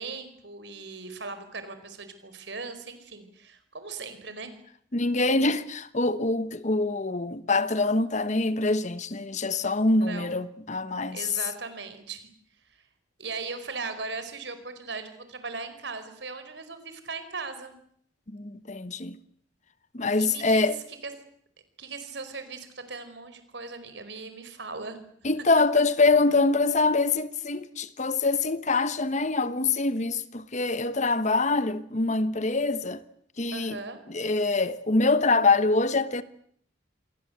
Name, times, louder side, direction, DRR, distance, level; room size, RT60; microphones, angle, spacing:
voice 1, 0.0-4.5 10.0-10.3 11.1-12.3 13.2-17.8 20.2-20.7 21.0-21.1 21.8-25.0 33.5-34.0, right 4 dB, 65° right, 4.8 m, -38 dB
voice 2, 4.9-11.3 18.3-19.2 19.9-20.8 25.2-33.0 33.4-33.8 34.1-36.2, left 3 dB, 40° left, 1.2 m, -24 dB
28.0 x 22.5 x 8.0 m
head